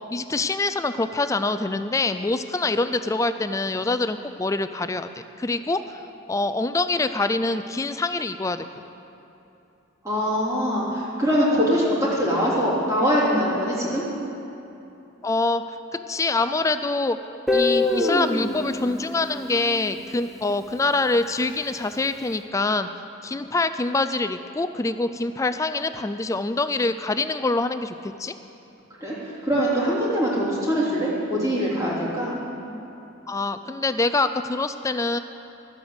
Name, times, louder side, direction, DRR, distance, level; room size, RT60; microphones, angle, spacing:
voice 1, 0.1-5.8 6.3-8.6 15.2-15.6 16.1-17.2 17.5-22.9 23.2-28.3 33.3-35.2, left 3 dB, 15° left, 11 dB, 0.3 m, -25 dB
voice 2, 10.0-14.0 29.0-32.4, equal, 15° right, -8 dB, 3.3 m, -23 dB
Guitar, 17.5-20.4, left 2 dB, ahead, 0.8 m, -25 dB
13.0 x 8.2 x 8.0 m, 2.9 s
head